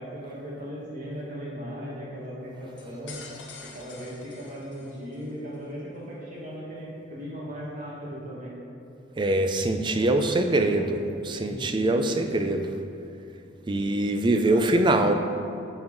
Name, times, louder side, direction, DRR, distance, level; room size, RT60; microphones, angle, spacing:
voice 1, 0.0-3.2 3.6-8.5 9.9-10.9 11.3-12.5 14.4-14.8, equal, 40° right, -6 dB, 1.6 m, -38 dB
sound 1, 2.8-5.3, left 5 dB, 65° left, 0.8 m, -46 dB
voice 2, 9.2-11.0 11.2-12.7 13.7-15.1, right 2 dB, 25° right, 6 dB, 0.4 m, -23 dB
9.7 x 4.4 x 3.8 m, 2.6 s
head